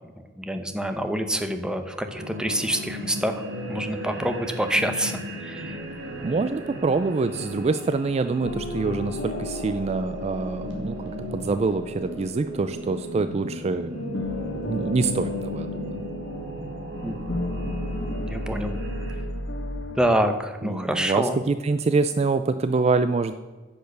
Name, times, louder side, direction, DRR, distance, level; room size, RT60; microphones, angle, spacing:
voice 1, 0.4-3.4 3.7-5.8 17.0-17.1 18.2-18.8 20.0-21.4, right 1 dB, 5° right, 7 dB, 0.8 m, -26 dB
sound 1, 2.1-19.1, right 1 dB, 80° right, 2.4 m, -36 dB
voice 2, 6.2-13.9 14.7-16.0 20.6-23.3, right 3 dB, 35° right, 11 dB, 0.3 m, -25 dB
sound 2, 8.4-13.6 13.9-20.2, left 1 dB, 70° left, 1.4 m, -34 dB
10.0 x 6.6 x 6.6 m, 1.3 s
head